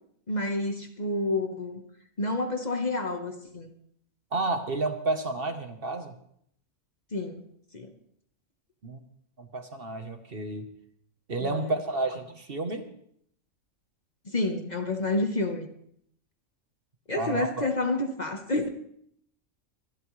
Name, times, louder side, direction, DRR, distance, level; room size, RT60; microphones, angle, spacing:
voice 1, 0.3-1.8 2.2-3.7 7.1-7.4 7.7-7.9 11.4-11.6 14.2-15.7 17.1-18.7, left 2 dB, 35° left, 5 dB, 1.2 m, -29 dB
voice 2, 4.3-6.1 8.8-9.0 9.4-10.7 11.3-12.9 17.2-17.7, right 2 dB, 45° right, 7 dB, 1.3 m, -31 dB
24.0 x 12.0 x 3.2 m, 0.68 s
omnidirectional pair, 1.4 m